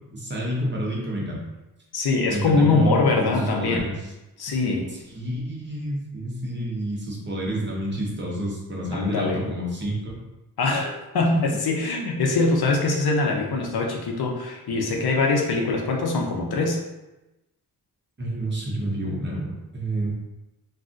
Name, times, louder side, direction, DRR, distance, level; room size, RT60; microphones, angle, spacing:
voice 1, 0.1-1.4 2.3-2.9 3.2-3.9 5.1-10.2 11.3-11.4 18.2-20.1, right 1 dB, 30° right, -4 dB, 0.7 m, -29 dB
voice 2, 1.9-3.9 4.4-4.9 8.9-9.5 10.6-16.8, left 3 dB, 75° left, 1 dB, 0.6 m, -23 dB
2.4 x 2.4 x 3.7 m, 1.0 s
wide cardioid pair, 160°, 38 cm